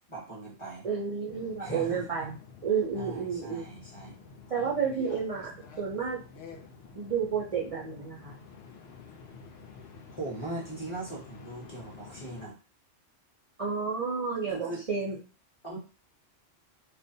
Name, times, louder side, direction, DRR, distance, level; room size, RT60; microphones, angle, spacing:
voice 1, 0.1-0.9 1.6-2.3 2.9-4.1 10.1-12.6 14.5-14.9 15.6-15.8, right 2 dB, 30° left, -4 dB, 0.7 m, -40 dB
voice 2, 0.8-2.3 2.6-3.7 4.5-5.5 5.8-6.2 6.9-8.3 13.6-15.1, right 6 dB, 55° right, -5 dB, 0.4 m, -31 dB
sound 1, 1.3-12.5, left 5 dB, 65° left, 0.7 m, -49 dB
2.4 x 2.1 x 2.6 m, 0.35 s
omnidirectional pair, 1.3 m